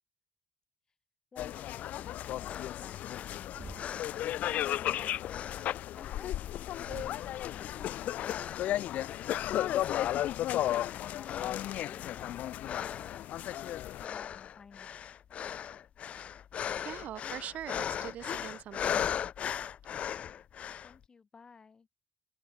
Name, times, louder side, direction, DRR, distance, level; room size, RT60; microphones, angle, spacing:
voice 1, 1.3-3.9 4.6-5.2 5.9-9.6 10.6-12.6 14.0-14.9 20.8-21.9, left 5 dB, 30° left, 4.3 m, -54 dB
sound 1, 1.4-14.1, left 13 dB, 70° left, 0.7 m, -34 dB
sound 2, 2.5-4.9 5.3-6.4 6.7-8.8 9.1-9.5 9.8-11.0 11.2-21.0, left 9 dB, 50° left, 1.9 m, -39 dB
Thump thud, 3.5-4.1 6.8-7.4, right 4 dB, 20° right, 3.1 m, -47 dB
voice 2, 16.8-19.2, right 11 dB, 65° right, 2.8 m, -43 dB
open air
cardioid pair, 130°, 3 cm